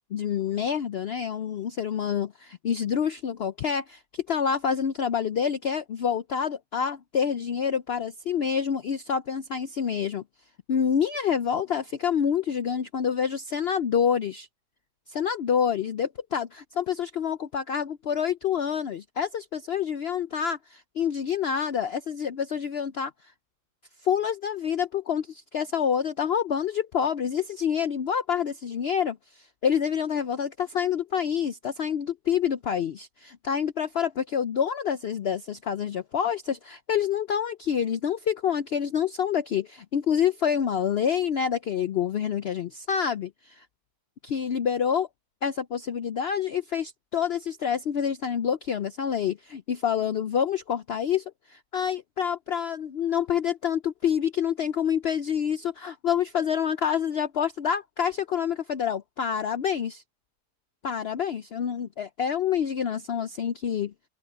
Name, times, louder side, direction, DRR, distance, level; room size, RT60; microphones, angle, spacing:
voice 1, 0.1-10.2 10.7-14.5 15.1-23.1 24.0-43.7 44.2-45.1 45.4-60.0 60.8-63.9, left 8 dB, 75° left, 0.5 m, -27 dB
open air
omnidirectional pair, 1.7 m